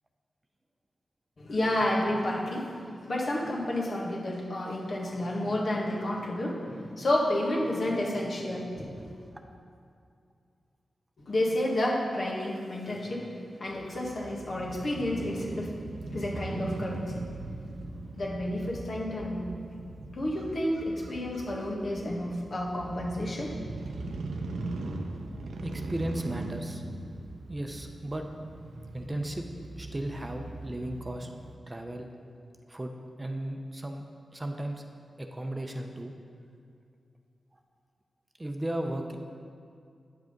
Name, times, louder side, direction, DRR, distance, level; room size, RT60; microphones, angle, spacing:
voice 1, 1.4-2.7 3.1-9.2 11.3-15.7 16.1-17.1 18.2-19.5 20.1-23.5, left 1 dB, 60° left, -2 dB, 1.7 m, -30 dB
Crow / Motorcycle, 13.7-31.5, right 2 dB, 90° right, 0.6 m, -40 dB
voice 2, 25.6-26.8 27.5-28.2 28.9-29.4 29.8-31.3 31.7-32.1 32.7-32.9 33.2-34.0 34.3-34.8 35.2-36.1 38.4-39.2, right 1 dB, 25° right, 4 dB, 0.7 m, -35 dB
9.3 x 6.1 x 5.2 m, 2.3 s
cardioid pair, 70°, 0 cm